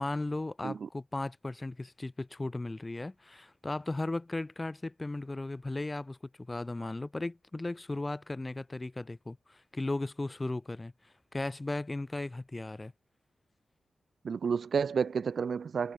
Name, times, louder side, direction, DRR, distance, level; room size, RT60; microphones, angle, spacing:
voice 1, 0.0-12.9, left 2 dB, 20° left, 3.4 m, -36 dB
voice 2, 14.2-15.9, right 6 dB, 65° right, 1.3 m, -31 dB
wide cardioid pair, 90°, 0 cm